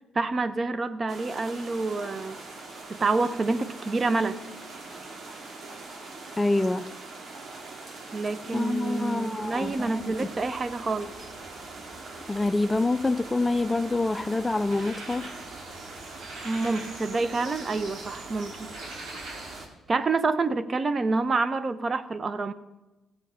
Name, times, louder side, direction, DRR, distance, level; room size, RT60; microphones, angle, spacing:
voice 1, 0.1-2.4 2.9-4.4 8.1-11.3 16.4-18.7 19.9-22.5, right 3 dB, 35° right, 13 dB, 0.8 m, -28 dB
sound 1, 1.1-19.7, right 3 dB, 55° right, 2.4 m, -42 dB
voice 2, 6.4-6.9 8.5-10.3 12.3-15.3, left 2 dB, 15° left, 13 dB, 0.4 m, -26 dB
sound 2, 9.4-19.6, right 2 dB, 85° right, 4.3 m, -46 dB
15.0 x 8.1 x 5.7 m, 1.1 s
cardioid pair, 90°, 0 cm